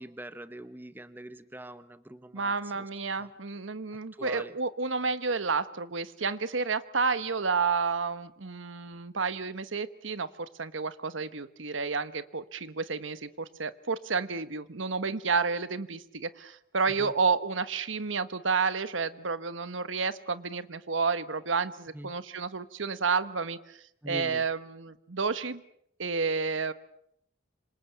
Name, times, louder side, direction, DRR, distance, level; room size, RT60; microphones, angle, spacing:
voice 1, 0.0-2.9 3.2-3.3 4.1-4.5 17.0-17.1 21.9-22.1 24.0-24.5, right 1 dB, 10° right, 12 dB, 1.1 m, -43 dB
voice 2, 2.3-23.8 24.1-25.6 26.0-26.7, right 4 dB, 85° right, 13 dB, 1.2 m, -30 dB
27.0 x 26.0 x 7.2 m, 0.73 s
head